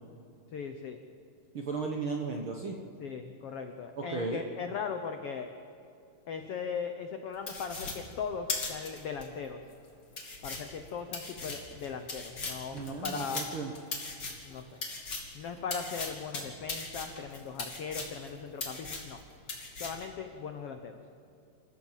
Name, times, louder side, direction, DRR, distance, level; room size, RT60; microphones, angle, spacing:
voice 1, 0.5-1.0 3.0-5.5 6.3-9.6 10.4-13.5 14.4-14.7 15.3-19.2 19.8-21.0, left 6 dB, 75° left, 6 dB, 1.3 m, -38 dB
voice 2, 1.5-2.8 3.9-4.4 12.7-13.7, right 4 dB, 60° right, 2 dB, 1.4 m, -35 dB
sound 1, 7.5-9.3 9.7-9.8 10.1-15.4 15.7-18.3 18.6-19.2 19.5-20.1, left 3 dB, 30° left, 3.1 m, -38 dB
27.0 x 14.5 x 7.5 m, 2.5 s
omnidirectional pair, 4.1 m